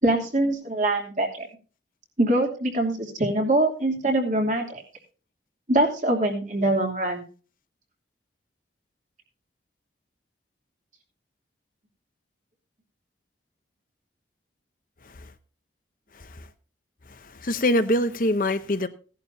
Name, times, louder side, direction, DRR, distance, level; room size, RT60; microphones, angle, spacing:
voice 1, 0.0-1.5 2.2-4.8 5.7-7.2, right 1 dB, 40° right, 2.7 m, -23 dB
voice 2, 16.1-16.5 17.1-18.9, left 1 dB, 45° left, 0.8 m, -25 dB
16.5 x 11.0 x 2.7 m
head